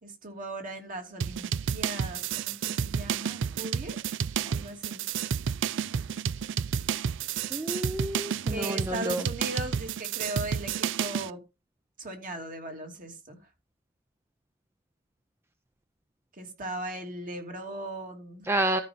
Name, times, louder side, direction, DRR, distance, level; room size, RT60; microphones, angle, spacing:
voice 1, 0.0-4.0 4.4-5.1 8.5-11.4 12.0-13.4 16.4-18.5, right 1 dB, 40° right, 3 dB, 2.7 m, -38 dB
sound 1, 1.2-11.3, right 7 dB, 60° right, 0.4 m, -31 dB
voice 2, 7.5-9.2 18.5-18.8, right 1 dB, 10° right, 8 dB, 0.6 m, -29 dB
13.5 x 5.5 x 4.2 m, 0.27 s
head